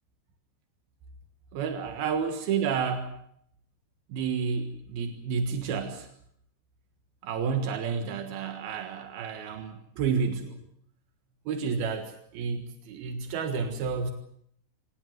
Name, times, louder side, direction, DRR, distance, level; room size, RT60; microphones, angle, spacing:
voice 1, 1.5-3.2 4.1-6.1 7.2-10.6 11.5-14.1, right 6 dB, 85° right, 6 dB, 3.5 m, -30 dB
25.0 x 19.5 x 7.9 m, 0.68 s
omnidirectional pair, 4.2 m